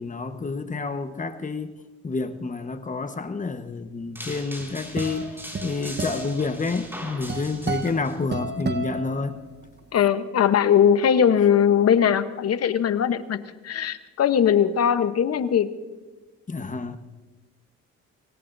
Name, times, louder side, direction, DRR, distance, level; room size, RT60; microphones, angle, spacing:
voice 1, 0.0-1.7 2.0-9.4 16.5-17.0, left 4 dB, 25° left, 1.2 m, -29 dB
sound 1, 4.2-8.1, equal, 5° right, 5.5 m, -40 dB
sound 2, 4.4-9.8, right 4 dB, 35° right, 1.2 m, -33 dB
voice 2, 9.9-13.4 13.6-15.7, left 8 dB, 55° left, 1.0 m, -20 dB
25.0 x 18.5 x 2.7 m
cardioid pair, 90°, 30 cm